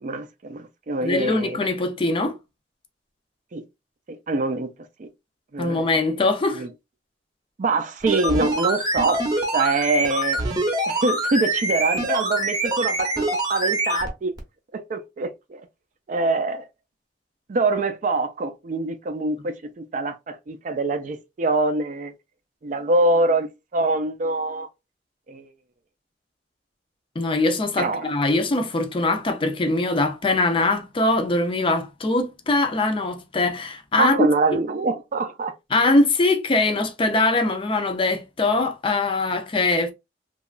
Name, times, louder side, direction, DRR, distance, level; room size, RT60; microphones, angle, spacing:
voice 1, 0.0-1.6 3.5-3.6 4.1-4.7 5.0-5.1 5.5-5.9 6.5-6.7 7.6-9.2 9.5-10.4 10.9-13.2 13.5-14.3 14.7-15.6 16.1-16.7 17.5-22.1 22.6-24.7 25.3-25.5 27.8-28.1 34.0-35.5, right 3 dB, 45° right, 0.4 m, -24 dB
voice 2, 1.0-2.4 5.6-6.6 27.2-34.2 34.5-34.6 35.7-39.9, left 2 dB, 30° left, 0.5 m, -22 dB
sound 1, 8.0-14.1 14.4-14.5, right 1 dB, 25° right, 0.7 m, -24 dB
2.9 x 2.3 x 2.3 m
head